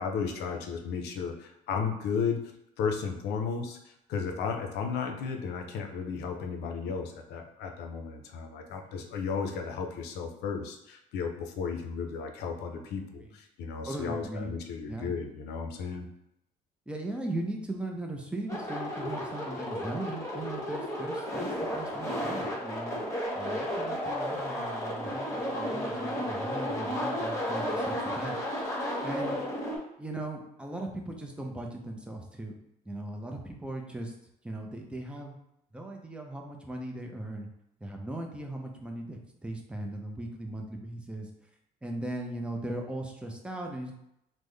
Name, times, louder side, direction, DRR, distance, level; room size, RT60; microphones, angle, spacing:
voice 1, 0.0-2.5 2.8-3.8 4.1-16.1, left 5 dB, 75° left, 5 dB, 0.5 m, -34 dB
voice 2, 12.7-13.3 13.9-14.5 14.9-15.1 16.9-23.0 23.3-29.4 30.0-32.5 32.9-34.1 34.4-35.4 35.7-37.5 37.8-41.3 41.8-43.9, right 1 dB, 5° right, 2 dB, 0.5 m, -38 dB
sound 1, 18.5-29.8, equal, 15° left, 1.2 m, -33 dB
3.6 x 2.1 x 3.2 m, 0.82 s
cardioid pair, 110°, 17 cm